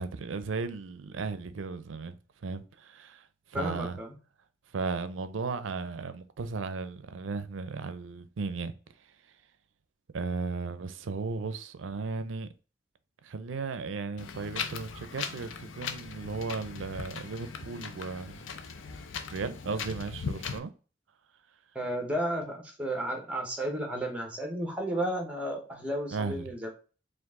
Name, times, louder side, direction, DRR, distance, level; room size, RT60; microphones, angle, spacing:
voice 1, 0.0-2.2 2.4-4.0 4.7-8.7 10.1-12.5 13.2-18.5 19.3-20.7 26.1-26.5, right 4 dB, 90° right, 0.5 m, -35 dB
voice 2, 3.5-4.1 21.7-26.7, right 1 dB, 5° right, 1.0 m, -33 dB
Wind, 14.2-20.6, left 6 dB, 90° left, 0.5 m, -39 dB
4.6 x 2.5 x 3.6 m
head